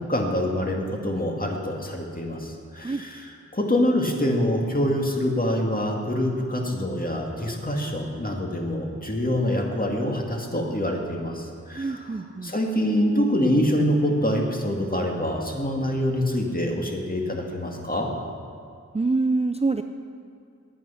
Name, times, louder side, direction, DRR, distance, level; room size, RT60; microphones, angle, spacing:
voice 1, 0.0-12.0 12.4-18.1, left 1 dB, 30° left, 0 dB, 2.1 m, -25 dB
voice 2, 11.8-12.5 18.9-19.8, right 3 dB, 20° right, 6 dB, 0.5 m, -25 dB
16.0 x 9.4 x 5.7 m, 2.4 s
wide cardioid pair, 50°, 30 cm